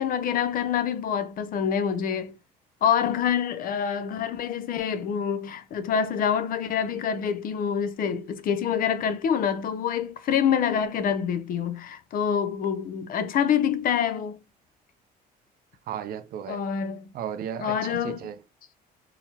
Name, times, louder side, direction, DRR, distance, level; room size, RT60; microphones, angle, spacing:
voice 1, 0.0-2.3 2.8-14.4 16.5-17.1 17.6-18.2, left 8 dB, 55° left, 0.6 m, -26 dB
voice 2, 15.9-16.6 17.1-18.4, right 9 dB, 60° right, 0.6 m, -34 dB
3.9 x 2.9 x 2.8 m
cardioid pair, 110°, 17 cm